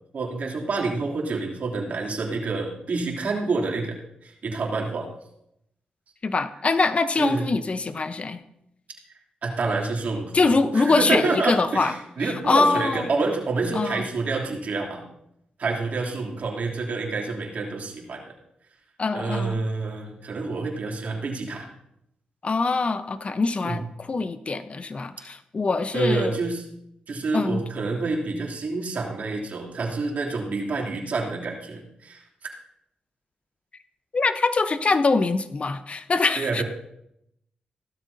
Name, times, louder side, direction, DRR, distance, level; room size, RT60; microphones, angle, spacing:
voice 1, 0.1-5.1 7.2-7.4 9.4-15.0 15.6-18.2 19.1-21.6 23.6-23.8 25.9-26.6 27.1-32.2 36.4-36.6, right 3 dB, 65° right, -1 dB, 3.1 m, -28 dB
voice 2, 6.2-8.4 10.3-11.9 12.2-13.1 13.7-14.0 19.0-19.6 22.4-26.4 27.3-27.6 34.1-36.6, left 3 dB, 45° left, 11 dB, 0.9 m, -23 dB
16.5 x 12.5 x 2.8 m, 0.79 s
cardioid pair, 60°, 3 cm